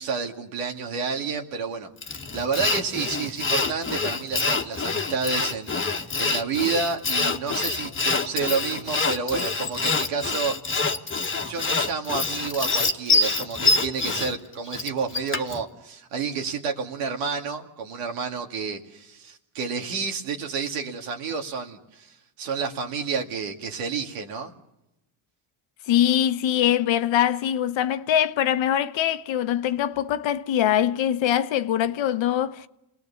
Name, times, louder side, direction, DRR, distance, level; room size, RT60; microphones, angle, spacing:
voice 1, 0.0-10.9 11.5-24.5, right 5 dB, 85° right, 2.5 m, -30 dB
Sawing, 2.0-15.6, left 4 dB, 25° left, 1.5 m, -26 dB
voice 2, 25.9-32.7, left 10 dB, 65° left, 1.1 m, -23 dB
28.5 x 19.0 x 7.1 m
supercardioid pair, 80°, 49 cm